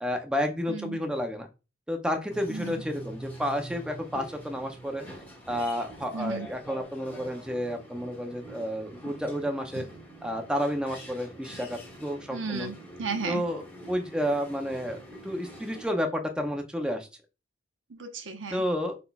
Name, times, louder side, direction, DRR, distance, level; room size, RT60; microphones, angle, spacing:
voice 1, 0.0-1.5 1.9-5.1 5.5-9.8 10.2-12.7 13.3-17.1 18.5-19.0, equal, 5° right, 3 dB, 0.6 m, -31 dB
voice 2, 0.7-1.0 2.5-2.8 6.1-6.5 12.3-13.4 17.9-18.6, right 4 dB, 80° right, 5 dB, 0.9 m, -34 dB
sound 1, 2.3-15.9, right 1 dB, 10° left, 1.2 m, -45 dB
5.3 x 3.9 x 2.3 m, 0.29 s
head